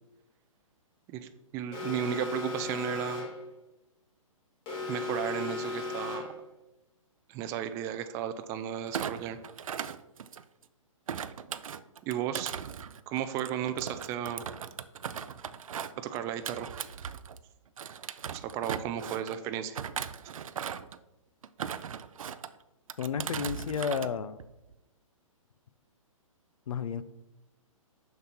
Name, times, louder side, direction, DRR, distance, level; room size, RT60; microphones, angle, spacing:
voice 1, 1.1-3.3 4.9-6.3 7.3-9.4 12.0-12.5 13.1-14.4 16.0-16.7 18.3-19.8, right 10 dB, 15° right, 10 dB, 0.3 m, -34 dB
Alarm, 1.7-3.5 4.7-6.4, left 3 dB, 30° left, 2.3 m, -36 dB
Thump thud, 8.9-10.6 11.1-17.4 17.8-19.4 19.7-21.0 21.4-22.5 22.9-24.1 24.4-24.7, right 8 dB, 75° right, 0.5 m, -38 dB
voice 2, 23.0-24.4 26.7-27.0, left 7 dB, 70° left, 14 dB, 0.6 m, -32 dB
6.8 x 5.9 x 4.4 m, 0.95 s
hypercardioid pair, 135°, 18 cm